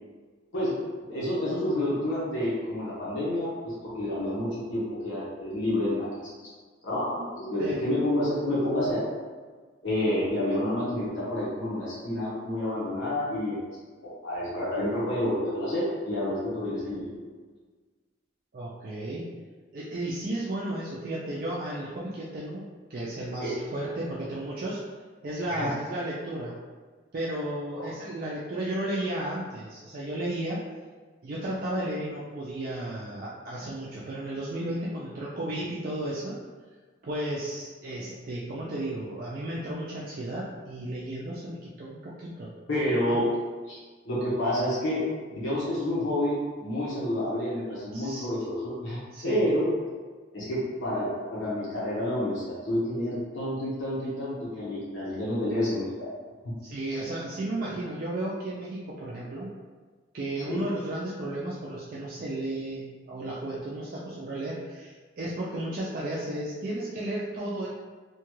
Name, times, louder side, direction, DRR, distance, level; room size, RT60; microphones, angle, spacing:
voice 1, 1.1-6.3 6.8-9.0 9.8-13.6 14.0-17.2 23.3-23.6 25.5-25.7 42.7-43.3 43.7-43.8 44.0-49.0 49.2-49.7 50.3-56.1 56.4-56.5 60.5-60.7, left 1 dB, 80° left, -9 dB, 1.0 m, -29 dB
voice 2, 18.5-19.3 19.7-22.6 22.9-24.8 25.2-26.5 27.1-30.6 31.2-36.4 37.0-42.5 43.0-43.2 47.9-48.3 49.1-49.4 56.6-59.5 60.1-67.7, right 1 dB, 45° right, -6 dB, 0.3 m, -33 dB
2.9 x 2.3 x 3.0 m, 1.5 s
head